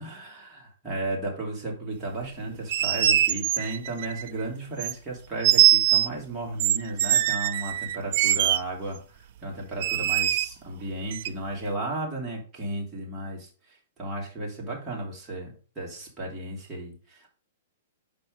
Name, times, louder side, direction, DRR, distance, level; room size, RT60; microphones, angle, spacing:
voice 1, 0.0-17.3, right 2 dB, 15° right, -3 dB, 2.7 m, -34 dB
sound 1, 2.5-4.3 4.8-4.9 5.4-6.1 6.6-8.6 9.8-10.5 11.1-11.3, right 13 dB, 55° right, 0.4 m, -22 dB
5.4 x 4.2 x 5.0 m, 0.36 s
hypercardioid pair, 135°, 0 cm